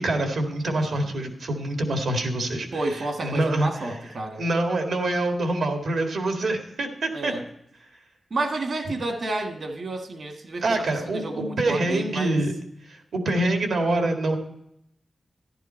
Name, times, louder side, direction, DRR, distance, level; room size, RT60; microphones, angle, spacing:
voice 1, 0.0-2.7 2.9-3.9 4.4-7.3 10.6-12.5 12.9-14.4, right 2 dB, 80° right, 3 dB, 1.8 m, -25 dB
voice 2, 2.7-4.4 7.1-7.4 8.3-12.4, right 2 dB, 60° right, 5 dB, 1.6 m, -30 dB
12.0 x 11.5 x 4.3 m, 0.78 s
cardioid pair, 75°, 0 cm